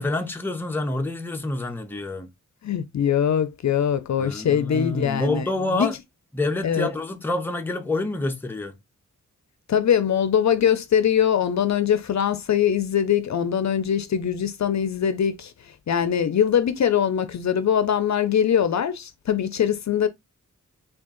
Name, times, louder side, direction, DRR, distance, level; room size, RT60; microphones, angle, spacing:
voice 1, 0.0-2.3 4.2-6.0 6.3-8.7, left 2 dB, 5° left, 0.6 m, -27 dB
voice 2, 2.6-5.4 5.7-5.9 6.6-6.9 9.7-15.5 15.9-20.1, left 8 dB, 60° left, 0.5 m, -22 dB
3.5 x 2.4 x 3.8 m
wide cardioid pair, 115°, 32 cm